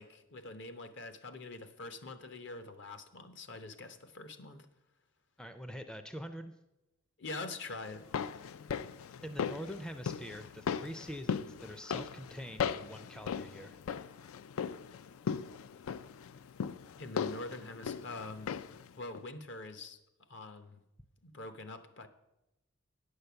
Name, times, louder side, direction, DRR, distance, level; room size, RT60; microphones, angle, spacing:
voice 1, 0.0-4.7 7.2-8.1 17.0-18.6 18.9-20.0 20.3-20.8 21.2-22.1, left 2 dB, 60° left, 10 dB, 0.8 m, -44 dB
voice 2, 5.4-6.5 9.2-13.8, equal, 5° left, 8 dB, 0.4 m, -44 dB
sound 1, 7.9-18.9 19.1-19.2, left 7 dB, 85° left, 0.4 m, -38 dB
9.3 x 6.6 x 6.8 m, 0.94 s
head